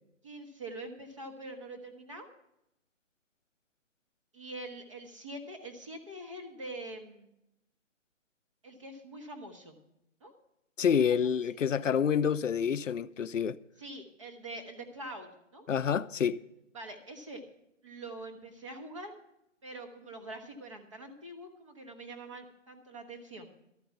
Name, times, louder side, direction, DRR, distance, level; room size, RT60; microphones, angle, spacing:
voice 1, 0.2-2.3 4.3-7.3 8.6-9.8 10.2-10.3 11.1-11.2 11.8-11.9 13.8-15.7 16.7-17.4 17.8-19.1 19.6-23.5, right 2 dB, 25° right, 1.2 m, -44 dB
voice 2, 10.8-13.6 15.7-16.4, left 7 dB, 75° left, 0.7 m, -28 dB
13.0 x 8.9 x 5.8 m
hypercardioid pair, 175°, 38 cm